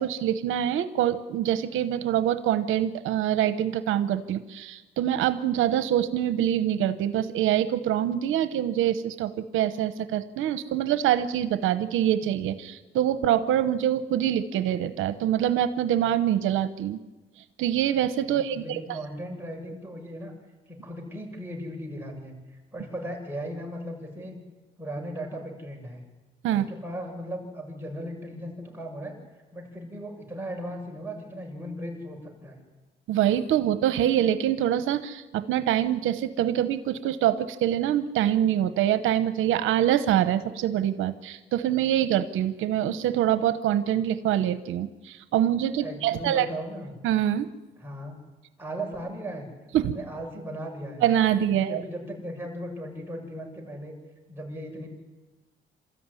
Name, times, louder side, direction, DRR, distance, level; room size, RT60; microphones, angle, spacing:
voice 1, 0.0-17.0 17.6-19.0 26.4-26.6 33.1-46.5 47.0-47.5 49.7-49.9 51.0-51.8, right 11 dB, 85° right, 11 dB, 1.0 m, -25 dB
voice 2, 18.3-20.3 20.7-22.3 22.7-24.4 24.8-26.0 26.5-29.1 29.5-32.6 45.8-46.9 47.8-48.2 48.6-49.5 49.8-51.0 51.5-53.9 54.3-54.9, equal, 10° right, 0 dB, 7.1 m, -37 dB
26.5 x 14.0 x 9.9 m, 1.2 s
cardioid pair, 90°, 20 cm